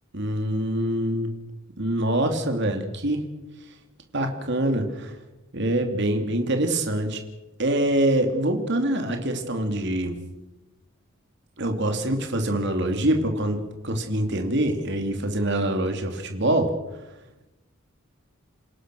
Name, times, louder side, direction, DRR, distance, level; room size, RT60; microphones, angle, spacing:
voice 1, 0.1-1.3 1.8-3.2 4.1-5.2 5.5-7.2 7.6-10.2 11.6-16.7, right 1 dB, 55° right, 5 dB, 2.8 m, -25 dB
28.5 x 18.0 x 6.3 m, 1.0 s
head